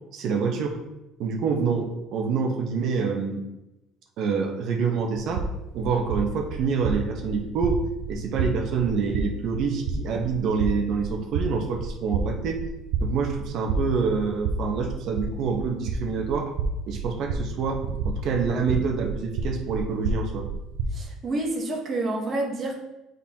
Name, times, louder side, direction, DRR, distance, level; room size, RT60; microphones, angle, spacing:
voice 1, 0.1-0.7 1.2-3.4 4.2-5.5 5.7-7.8 8.1-12.6 13.0-16.6 16.9-20.4, right 5 dB, 50° right, 2 dB, 1.0 m, -26 dB
sound 1, 5.1-21.0, right 3 dB, 70° right, 0.6 m, -31 dB
voice 2, 20.9-22.8, right 2 dB, 25° right, -2 dB, 1.1 m, -28 dB
8.7 x 4.0 x 2.9 m, 0.96 s
cardioid pair, 155°, 0 cm